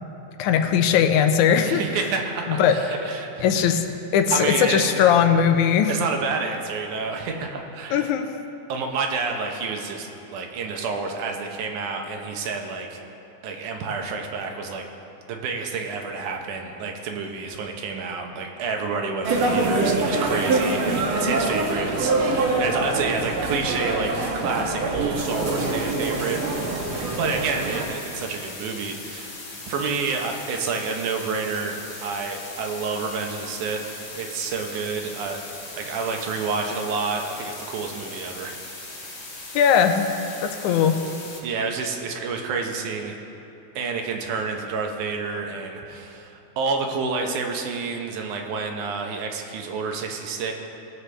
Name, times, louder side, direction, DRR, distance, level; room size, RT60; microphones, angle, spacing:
voice 1, 0.4-1.8 2.5-2.8 3.4-3.8 4.1-5.9 7.9-8.3 39.6-40.1 40.4-41.0, left 8 dB, 85° left, 6 dB, 2.0 m, -19 dB
voice 2, 1.7-3.7 4.3-5.2 5.9-8.1 8.7-13.0 13.4-14.8 15.3-26.4 27.2-31.7 32.0-33.8 34.2-35.4 35.8-38.6 41.4-43.1 43.8-50.5, right 4 dB, 85° right, 3 dB, 2.4 m, -29 dB
sound 1, 19.2-27.8, right 2 dB, 60° right, 1.5 m, -24 dB
sound 2, 25.1-41.4, left 2 dB, 50° left, 2.5 m, -39 dB
18.5 x 7.9 x 3.3 m, 2.9 s
omnidirectional pair, 3.5 m